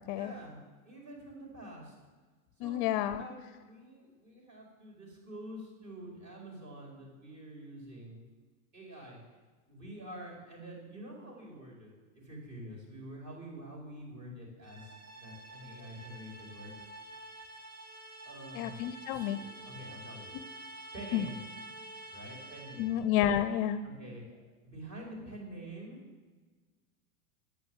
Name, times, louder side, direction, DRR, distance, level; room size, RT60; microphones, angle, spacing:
voice 1, 0.1-0.6 0.8-1.9 2.6-8.2 8.7-9.2 9.7-11.9 12.2-16.7 18.2-18.7 19.1-20.3 20.9-21.4 22.1-22.9 23.8-26.0, right 1 dB, 40° right, -1 dB, 5.0 m, -47 dB
voice 2, 2.6-3.3 18.5-19.4 20.3-20.4 21.1-21.3 22.8-23.8, left 11 dB, 40° left, 12 dB, 0.5 m, -30 dB
sound 1, 14.6-23.1, right 1 dB, 85° right, 2.7 m, -48 dB
10.0 x 8.6 x 8.0 m, 1.3 s
supercardioid pair, 140°, 43 cm